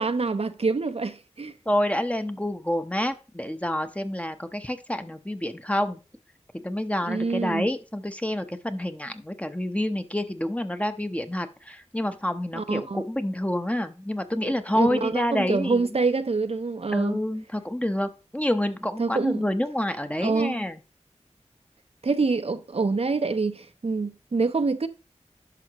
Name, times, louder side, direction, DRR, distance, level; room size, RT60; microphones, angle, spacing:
voice 1, 0.0-1.5 7.1-7.7 12.5-13.0 14.4-17.2 19.0-19.4 20.2-20.6 22.0-24.9, right 4 dB, 55° right, 0.6 m, -26 dB
voice 2, 1.7-6.0 6.6-15.9 16.9-20.8, left 1 dB, 10° left, 0.8 m, -28 dB
11.0 x 5.7 x 2.9 m
wide cardioid pair, 45°, 12 cm